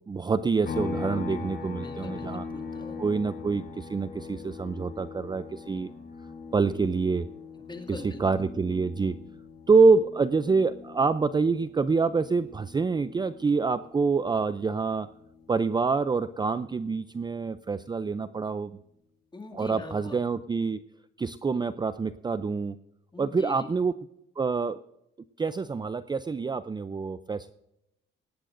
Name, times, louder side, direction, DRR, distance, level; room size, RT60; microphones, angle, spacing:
voice 1, 0.1-2.5 3.0-5.9 6.5-7.3 7.9-9.1 9.7-15.1 15.5-18.8 19.5-20.8 21.2-22.8 23.2-23.9 24.4-24.8 25.4-27.5, right 4 dB, 20° right, 13 dB, 0.5 m, -26 dB
sound 1, 0.6-14.2 14.5-16.7, left 4 dB, 60° left, 6.3 m, -41 dB
voice 2, 1.6-3.0 7.6-8.4 19.3-20.2 23.1-23.7, left 3 dB, 20° left, 2 dB, 2.4 m, -43 dB
18.0 x 18.0 x 2.6 m, 0.84 s
cardioid pair, 90°, 20 cm